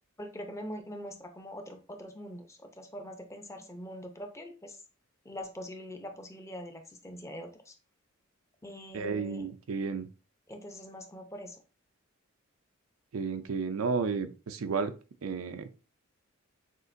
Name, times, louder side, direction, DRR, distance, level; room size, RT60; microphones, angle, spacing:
voice 1, 0.2-4.8 5.2-7.8 8.6-9.5 10.5-11.6, equal, 15° left, 5 dB, 0.6 m, -43 dB
voice 2, 8.9-10.1 13.1-14.9 15.2-15.7, right 5 dB, 85° right, 9 dB, 0.5 m, -32 dB
6.4 x 2.5 x 2.5 m, 0.34 s
head